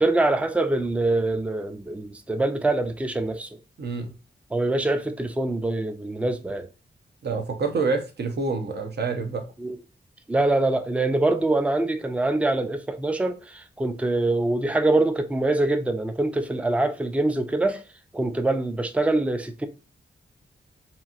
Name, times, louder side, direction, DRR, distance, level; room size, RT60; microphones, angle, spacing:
voice 1, 0.0-3.5 4.5-6.7 9.6-9.8 10.3-17.8 18.1-19.7, right 2 dB, 5° right, 0.4 m, -24 dB
voice 2, 3.8-4.2 7.2-9.4, right 4 dB, 65° right, 0.7 m, -27 dB
2.9 x 2.6 x 2.4 m
wide cardioid pair, 80°, 19 cm